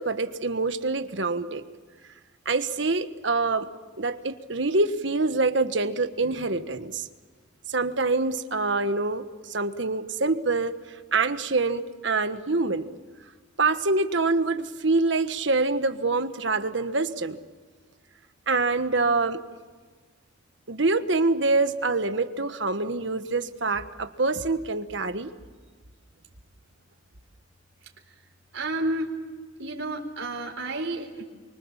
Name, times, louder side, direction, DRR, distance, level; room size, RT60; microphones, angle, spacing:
voice 1, 0.0-1.6 2.4-3.7 4.0-7.1 7.7-10.7 11.1-12.9 13.6-17.4 18.5-19.4 20.7-25.3, right 3 dB, 65° right, 9 dB, 1.4 m, -25 dB
voice 2, 28.5-29.1 29.6-31.2, right 2 dB, 80° right, 1 dB, 4.0 m, -30 dB
28.0 x 24.5 x 7.4 m, 1.5 s
head